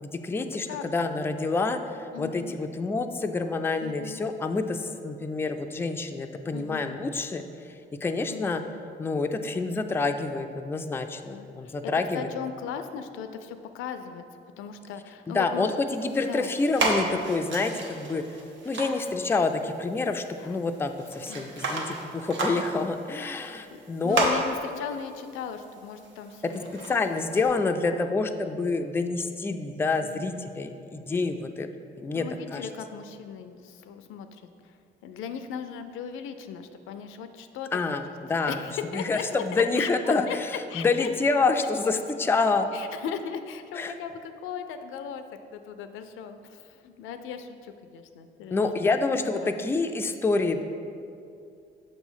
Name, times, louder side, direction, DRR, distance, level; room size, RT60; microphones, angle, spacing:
voice 1, 0.0-0.7 0.9-8.6 9.0-12.3 15.3-18.2 18.7-24.3 26.4-26.5 26.9-31.7 31.9-32.3 32.5-32.7 37.7-38.7 38.9-40.5 40.7-42.7 43.8-43.9 48.5-50.6, left 3 dB, 10° left, 6 dB, 0.3 m, -27 dB
voice 2, 2.1-2.6 3.8-4.2 6.5-6.9 8.3-8.7 11.3-11.8 12.1-14.2 14.6-15.7 16.3-16.5 20.4-20.7 21.3-21.5 23.1-26.7 27.9-28.1 30.0-30.3 31.3-31.4 32.1-37.7 38.3-39.2 39.5-40.4 40.7-41.1 42.7-48.6 48.9-49.8, left 7 dB, 90° left, 9 dB, 0.4 m, -38 dB
sound 1, 15.9-27.5, right 2 dB, 70° right, 1.0 m, -34 dB
6.6 x 3.0 x 5.5 m, 2.5 s
cardioid pair, 90°, 20 cm